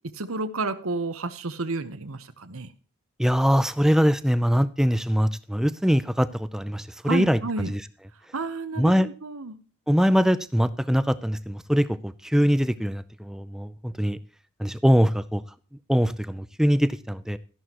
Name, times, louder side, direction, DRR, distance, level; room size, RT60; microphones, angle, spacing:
voice 1, 0.1-2.7 7.0-7.7 8.3-9.6, right 3 dB, 80° right, 10 dB, 1.0 m, -31 dB
voice 2, 3.2-7.8 8.8-9.1 9.9-14.2 14.6-15.4 15.9-17.4, equal, ahead, 14 dB, 0.5 m, -22 dB
13.5 x 11.0 x 3.0 m, 0.40 s
head